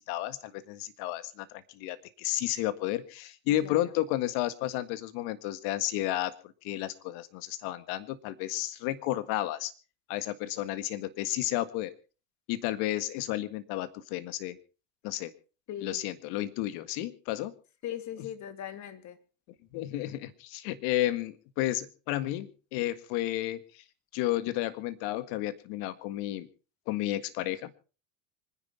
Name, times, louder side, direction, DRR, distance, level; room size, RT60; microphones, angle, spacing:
voice 1, 0.0-9.7 10.1-11.9 12.5-14.6 15.0-15.3 15.8-17.5 19.7-23.8 24.1-26.5 26.9-27.7, left 15 dB, 65° left, 1.8 m, -32 dB
voice 2, 15.7-16.0 17.8-19.2, left 10 dB, 45° left, 2.5 m, -39 dB
25.5 x 10.5 x 4.3 m
hypercardioid pair, 90°, 40 cm